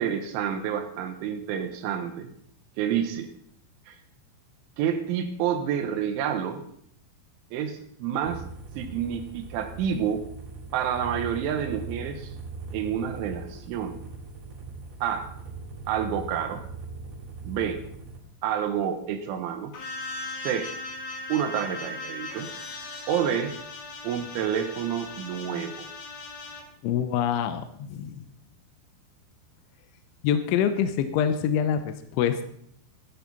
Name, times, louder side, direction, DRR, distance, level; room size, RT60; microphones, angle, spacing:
voice 1, 0.0-2.3 2.8-3.3 3.9-4.0 4.8-6.6 7.5-8.4 8.8-10.3 10.7-12.3 12.7-13.9 15.0-15.3 15.9-16.6 17.4-17.8 18.4-19.7 20.4-20.7 21.3-22.5 23.1-23.5 24.0-25.9, right 8 dB, 80° right, 7 dB, 3.4 m, -29 dB
sound 1, 8.2-18.2, right 4 dB, 55° right, 5.0 m, -40 dB
sound 2, 19.7-26.6, left 3 dB, 55° left, 3.7 m, -38 dB
voice 2, 26.8-28.2 30.2-32.5, left 8 dB, 80° left, 9 dB, 3.1 m, -26 dB
14.0 x 12.5 x 4.1 m, 0.66 s
omnidirectional pair, 5.8 m